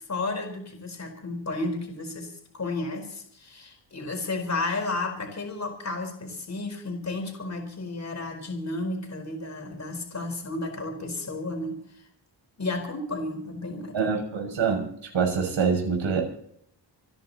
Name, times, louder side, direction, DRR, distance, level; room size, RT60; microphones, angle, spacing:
voice 1, 0.0-12.0 12.6-14.1, left 2 dB, 35° left, 2 dB, 4.7 m, -32 dB
voice 2, 13.9-14.8 15.1-16.2, right 6 dB, 80° right, 2 dB, 6.7 m, -25 dB
27.5 x 11.0 x 4.2 m, 0.66 s
wide cardioid pair, 100°, 45 cm